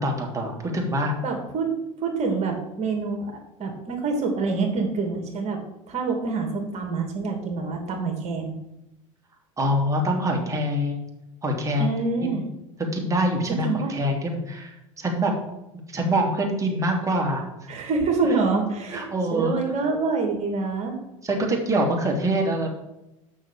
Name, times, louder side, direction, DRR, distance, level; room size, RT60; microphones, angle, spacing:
voice 1, 0.0-1.2 9.6-11.0 11.4-11.9 12.2-12.4 12.9-15.3 15.9-17.4 18.2-18.3 18.9-19.7 21.2-22.7, right 1 dB, 20° right, 0 dB, 2.8 m, -25 dB
voice 2, 1.2-1.7 2.0-3.3 3.6-5.6 5.9-8.6 11.8-12.4 13.6-13.9 17.7-20.9, right 4 dB, 40° right, 2 dB, 2.7 m, -26 dB
6.4 x 6.3 x 7.5 m, 0.89 s
hypercardioid pair, 75°, 17 cm